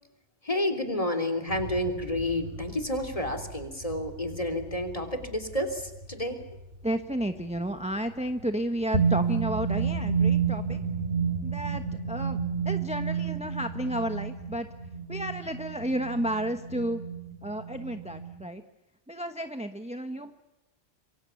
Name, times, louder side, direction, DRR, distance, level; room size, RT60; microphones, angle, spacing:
voice 1, 0.4-6.4, left 1 dB, 30° left, 5 dB, 3.4 m, -30 dB
sound 1, 1.5-6.8 8.9-18.4, right 6 dB, 90° right, 2.7 m, -31 dB
voice 2, 6.8-10.8 11.4-12.4 12.6-14.7 15.1-17.0 17.4-18.6 19.1-20.3, right 1 dB, 5° right, 7 dB, 1.1 m, -32 dB
27.5 x 23.0 x 7.1 m, 1.0 s
omnidirectional pair, 1.2 m